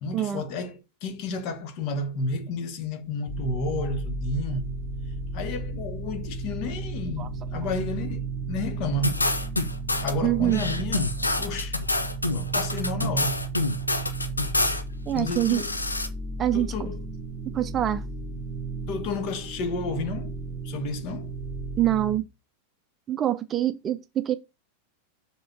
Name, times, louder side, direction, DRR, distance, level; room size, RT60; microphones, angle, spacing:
voice 1, 0.0-4.8 5.3-9.3 10.0-11.8 12.3-13.4 15.1-15.7 16.5-17.0 18.9-20.3 20.6-21.3, left 3 dB, 45° left, 1.4 m, -31 dB
sound 1, 3.3-22.2, right 3 dB, 20° left, 3.4 m, -34 dB
sound 2, 9.0-10.1 10.5-14.8 15.2-16.1, left 2 dB, 80° left, 0.9 m, -27 dB
voice 2, 10.2-10.6 15.1-15.6 16.4-16.9 17.5-18.0 21.8-22.3 23.1-24.4, right 12 dB, 25° right, 0.5 m, -25 dB
6.9 x 3.8 x 6.0 m
figure-of-eight pair, 90°, 0 cm